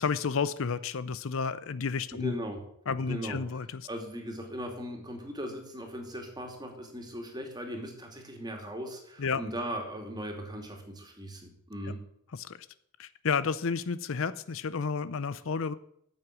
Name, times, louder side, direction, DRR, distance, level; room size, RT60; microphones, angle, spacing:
voice 1, 0.0-2.3 2.9-3.9 9.2-9.4 12.3-12.7 13.0-15.7, left 5 dB, 65° left, 16 dB, 0.6 m, -31 dB
voice 2, 2.2-2.6 3.1-3.4 3.9-12.0, equal, 20° right, 3 dB, 2.6 m, -38 dB
9.6 x 7.9 x 8.4 m, 0.71 s
head